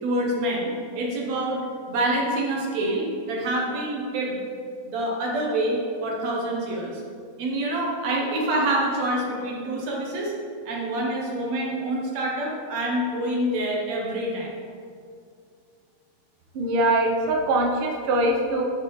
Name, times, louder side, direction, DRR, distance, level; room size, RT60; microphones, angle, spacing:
voice 1, 0.0-1.6 1.9-4.4 4.8-7.0 7.4-10.3 10.7-14.5, right 1 dB, 65° right, -2 dB, 2.1 m, -26 dB
voice 2, 16.5-18.6, right 1 dB, 85° right, 0 dB, 1.2 m, -22 dB
8.7 x 8.0 x 3.1 m, 2.3 s
omnidirectional pair, 3.7 m